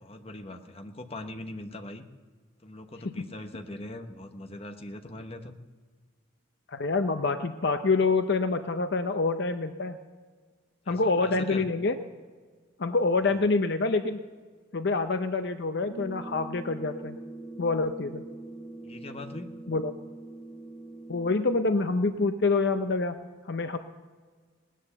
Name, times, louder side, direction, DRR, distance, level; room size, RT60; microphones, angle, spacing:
voice 1, 0.0-2.0 2.6-5.6 10.9-11.7 13.3-13.4 18.8-19.5, left 1 dB, 30° left, 6 dB, 1.0 m, -41 dB
voice 2, 6.7-10.0 10.9-11.9 12.8-14.2 14.7-17.2 17.6-18.2 19.7-19.9 21.1-23.2 23.4-23.8, left 3 dB, 55° left, 8 dB, 0.6 m, -26 dB
sound 1, 15.8-21.7, right 2 dB, 5° left, 2.4 m, -43 dB
18.5 x 10.0 x 6.8 m, 1.5 s
head